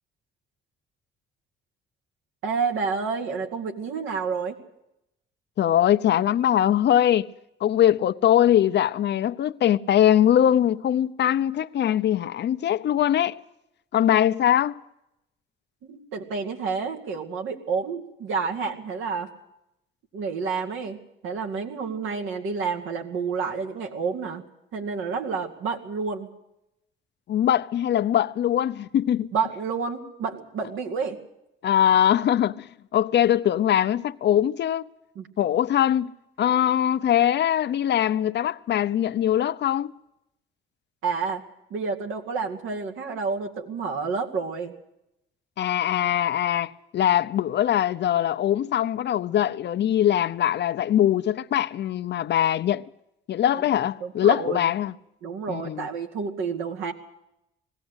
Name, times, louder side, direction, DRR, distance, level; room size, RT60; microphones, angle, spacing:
voice 1, 2.4-4.6 15.8-19.3 20.1-21.0 21.2-24.4 24.7-26.3 29.3-31.2 35.2-35.3 41.0-41.4 41.7-44.8 53.5-53.6 54.0-54.7 55.2-56.9, right 5 dB, 85° right, 2.2 m, -29 dB
voice 2, 5.6-7.3 7.6-13.4 13.9-14.8 27.3-29.3 31.6-34.9 35.4-39.9 45.6-52.8 53.3-54.9 55.5-55.9, left 11 dB, 60° left, 0.7 m, -22 dB
20.5 x 16.0 x 8.1 m
cardioid pair, 90°, 20 cm